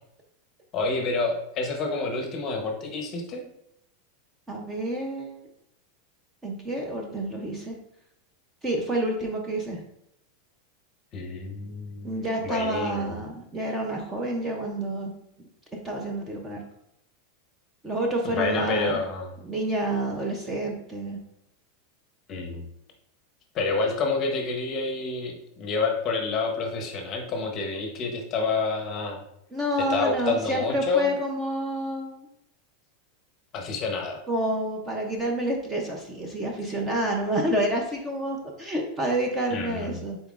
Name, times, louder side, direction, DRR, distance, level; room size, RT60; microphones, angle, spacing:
voice 1, 0.7-3.4 11.1-13.2 18.2-19.3 22.3-22.7 23.5-29.2 29.9-31.1 33.5-34.2 39.5-40.0, left 3 dB, 30° left, 3 dB, 0.8 m, -28 dB
voice 2, 4.5-5.4 6.4-7.8 8.6-9.8 12.0-15.2 15.8-16.6 17.8-19.0 19.4-21.2 29.5-32.2 34.3-40.2, right 1 dB, 15° right, 1 dB, 0.5 m, -28 dB
5.6 x 3.9 x 2.4 m, 0.80 s
supercardioid pair, 165°, 0 cm